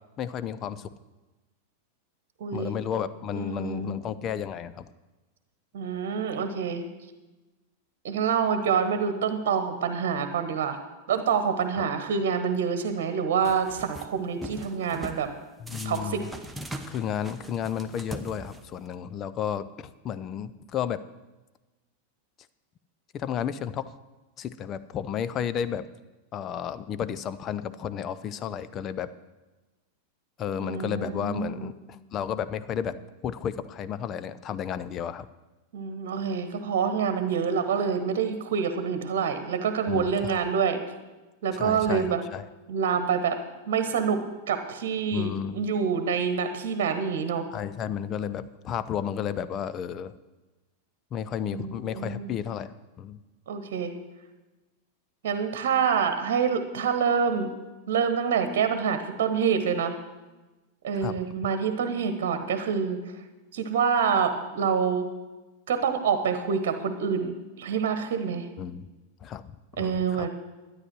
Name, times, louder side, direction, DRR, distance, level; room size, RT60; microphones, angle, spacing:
voice 1, 0.2-0.9 2.5-4.9 11.8-11.9 15.6-16.3 16.9-21.0 23.1-23.9 24.4-25.9 26.3-29.1 30.4-35.3 39.9-40.4 41.5-42.5 45.1-45.6 47.5-50.1 51.1-53.2 61.0-61.1 68.6-68.9 69.2-69.4 69.8-70.3, left 8 dB, 30° left, 14 dB, 0.6 m, -32 dB
voice 2, 2.4-2.7 3.3-4.0 5.7-6.8 8.0-10.8 11.1-15.3 15.8-16.2 30.6-31.7 35.7-40.8 41.4-42.2 42.7-43.4 43.7-44.2 44.5-47.5 51.5-52.3 53.5-53.9 55.2-57.5 57.9-60.0 60.8-63.0 63.5-65.1 65.7-68.5 69.8-70.3, right 6 dB, 55° right, 9 dB, 1.2 m, -27 dB
sound 1, 13.4-14.1 14.4-15.2 15.7-18.9, right 1 dB, 5° right, 1.0 m, -40 dB
12.5 x 9.7 x 6.2 m, 1.1 s
figure-of-eight pair, 90°, 0 cm